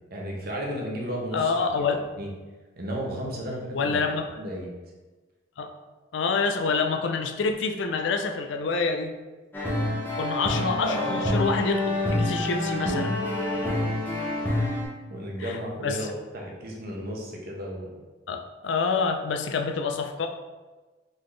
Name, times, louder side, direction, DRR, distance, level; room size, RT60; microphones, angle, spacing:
voice 1, 0.1-2.3 2.8-4.0 4.4-4.7 10.8-11.4 13.5-13.9 15.1-18.0, equal, 55° right, -1 dB, 0.9 m, -34 dB
voice 2, 1.3-2.0 3.7-4.3 5.6-5.7 6.1-9.1 10.2-13.1 15.4-16.0 18.3-20.3, left 4 dB, 75° left, 5 dB, 0.4 m, -27 dB
sound 1, 9.5-14.8, left 1 dB, 10° left, 0.9 m, -27 dB
4.0 x 3.8 x 3.2 m, 1.3 s
head